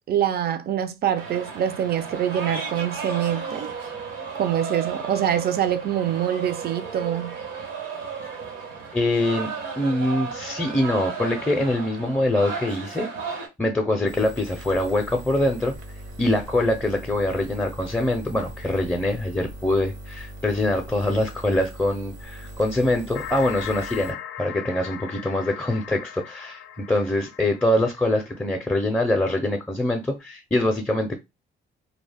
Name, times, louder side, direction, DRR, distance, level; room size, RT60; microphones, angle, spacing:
voice 1, 0.1-3.7 4.3-7.4, right 10 dB, 55° right, 0.5 m, -25 dB
sound 1, 1.2-13.5, right 5 dB, 85° right, 1.0 m, -34 dB
voice 2, 8.9-9.5 9.8-15.7 16.2-31.2, left 1 dB, 10° left, 0.5 m, -24 dB
sound 2, 14.1-24.1, equal, 70° right, 0.8 m, -40 dB
sound 3, 23.1-28.8, left 10 dB, 90° left, 0.4 m, -39 dB
2.2 x 2.0 x 3.3 m
cardioid pair, 90°, 20 cm